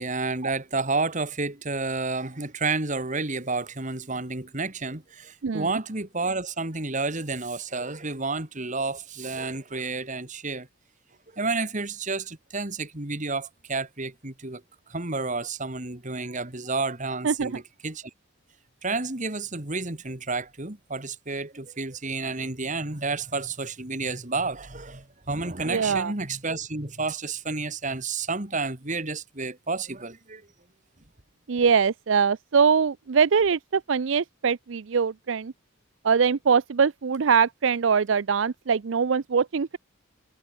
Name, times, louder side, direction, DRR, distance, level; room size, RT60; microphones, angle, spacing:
voice 1, 0.0-10.7 11.3-14.6 14.9-18.1 18.8-30.4, right 3 dB, 35° right, 2.4 m, -30 dB
voice 2, 17.2-17.6 25.7-26.1 31.5-35.5 36.0-39.8, right 6 dB, 65° right, 0.5 m, -23 dB
head